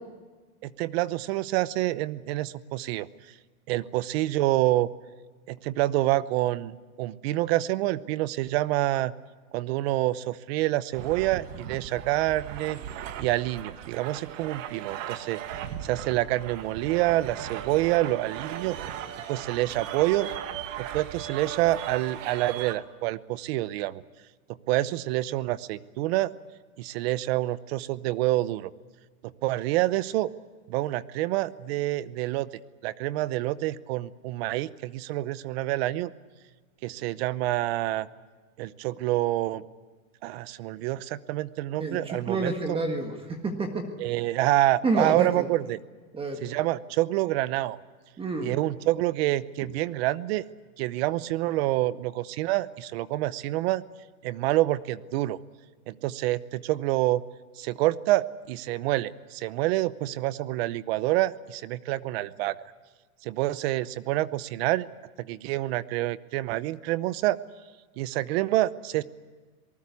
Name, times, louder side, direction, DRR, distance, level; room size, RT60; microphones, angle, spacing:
voice 1, 0.6-3.1 3.7-4.9 5.5-9.1 9.5-12.8 13.2-18.8 19.3-20.3 20.8-24.0 24.7-26.3 26.8-28.7 29.4-30.3 30.7-32.5 32.8-36.1 36.8-38.1 38.6-39.6 40.2-42.8 44.0-45.8 46.4-47.8 48.4-50.4 50.8-53.8 54.2-55.4 55.9-57.2 57.6-62.5 63.2-64.9 65.2-67.4 68.0-69.0, right 16 dB, 45° right, 17 dB, 0.8 m, -27 dB
sound 1, 10.9-22.8, right 10 dB, 60° right, 1.9 m, -37 dB
voice 2, 41.8-43.9 44.8-45.5 46.1-46.4 48.2-48.5, right 3 dB, 15° right, 5 dB, 1.7 m, -29 dB
26.5 x 19.5 x 8.4 m, 1.4 s
supercardioid pair, 160°, 42 cm